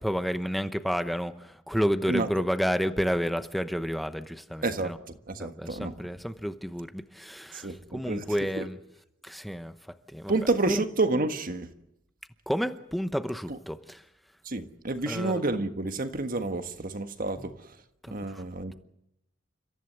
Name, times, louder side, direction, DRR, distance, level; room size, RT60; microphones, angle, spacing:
voice 1, 0.0-5.0 5.4-8.8 9.2-9.7 10.1-10.3 10.7-10.8 12.5-14.0 15.1-15.4 17.4-17.5 18.0-18.4, equal, ahead, 0.9 m, -30 dB
voice 2, 4.6-5.0 5.3-5.9 7.5-8.3 8.5-8.7 10.3-11.7 13.5-13.6 14.4-17.6 18.1-18.7, right 2 dB, 45° right, 1.5 m, -29 dB
29.5 x 14.5 x 8.0 m
head